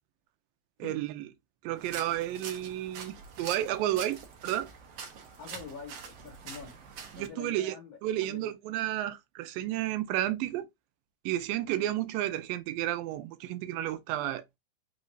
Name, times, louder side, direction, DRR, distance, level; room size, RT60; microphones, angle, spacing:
voice 1, 0.8-1.2 1.6-4.7 7.1-7.7 8.0-10.7 11.3-14.4, right 13 dB, 85° right, 2.3 m, -32 dB
sound 1, 1.8-7.3, right 6 dB, 65° right, 1.5 m, -45 dB
voice 2, 5.4-6.8 7.1-8.5, left 6 dB, 75° left, 1.4 m, -46 dB
5.5 x 3.1 x 2.5 m
omnidirectional pair, 4.1 m